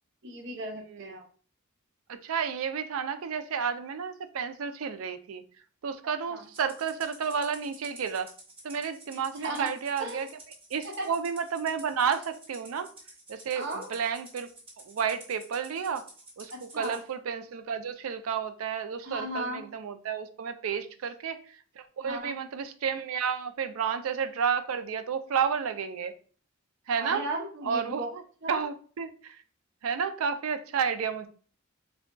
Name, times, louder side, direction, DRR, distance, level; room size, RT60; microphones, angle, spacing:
voice 1, 0.2-1.2 6.3-6.4 9.4-9.7 10.0-10.3 10.8-11.1 13.5-13.9 16.5-17.0 19.0-19.7 22.0-22.4 26.9-28.1 28.4-28.6, right 1 dB, 55° right, 0.7 m, -36 dB
voice 2, 2.1-5.4 5.8-8.3 8.6-10.3 10.7-12.9 13.3-14.5 14.8-16.1 16.4-21.4 21.8-26.1 26.9-27.3 27.6-28.2 28.5-29.4 29.8-31.3, right 6 dB, 85° right, 0.4 m, -31 dB
Rattle (instrument), 6.5-17.0, right 2 dB, 25° right, 1.0 m, -50 dB
3.6 x 3.4 x 2.2 m
head